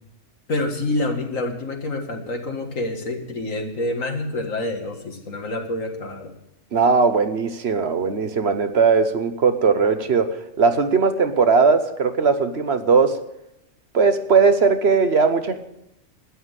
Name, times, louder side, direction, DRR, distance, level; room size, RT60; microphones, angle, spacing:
voice 1, 0.5-6.3, left 2 dB, 75° left, 3 dB, 2.2 m, -27 dB
voice 2, 6.7-13.2 13.9-15.6, right 5 dB, 55° right, 9 dB, 1.2 m, -19 dB
12.5 x 9.4 x 8.1 m, 0.84 s
omnidirectional pair, 1.4 m